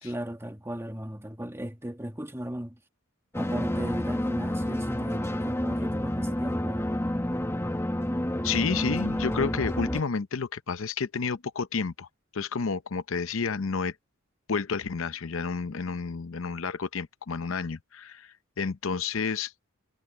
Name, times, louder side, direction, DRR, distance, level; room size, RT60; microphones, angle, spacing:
voice 1, 0.0-2.8 3.4-6.8, right 1 dB, 10° right, 1.8 m, -36 dB
sound 1, 3.3-10.0, left 1 dB, 10° left, 1.4 m, -29 dB
voice 2, 8.4-12.1 12.3-13.9 14.5-19.8, left 5 dB, 65° left, 0.7 m, -30 dB
head